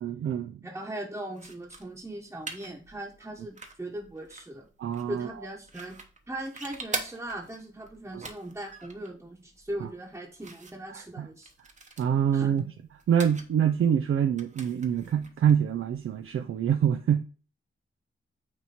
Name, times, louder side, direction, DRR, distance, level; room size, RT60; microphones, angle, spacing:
voice 1, 0.0-0.6 4.8-5.3 8.1-8.2 9.8-9.9 10.9-11.3 12.0-12.6 13.1-17.2, right 8 dB, 80° right, 0.5 m, -25 dB
voice 2, 0.6-4.7 5.1-6.0 6.3-11.5 12.3-12.7, right 1 dB, 10° right, 1.2 m, -39 dB
sound 1, 1.3-16.5, right 3 dB, 35° right, 1.0 m, -44 dB
9.0 x 3.0 x 4.2 m
wide cardioid pair, 135°, 21 cm